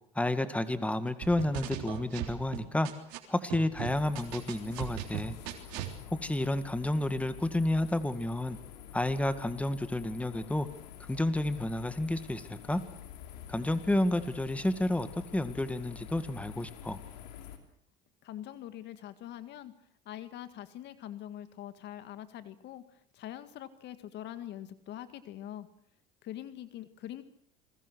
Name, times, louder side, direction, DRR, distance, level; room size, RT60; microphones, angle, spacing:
voice 1, 0.2-2.9 3.3-5.3 6.2-8.6 8.9-10.7 11.1-12.8 13.5-15.1 15.3-17.0, left 1 dB, 5° left, 11 dB, 2.1 m, -30 dB
sound 1, 1.2-3.2 3.5-5.9, right 13 dB, 75° right, 3.4 m, -38 dB
sound 2, 3.8-17.6, left 9 dB, 85° left, 3.2 m, -48 dB
voice 2, 18.2-19.7 20.1-25.7 26.2-27.2, left 12 dB, 55° left, 11 dB, 1.9 m, -44 dB
27.5 x 21.5 x 6.4 m, 0.65 s
supercardioid pair, 90°, 21 cm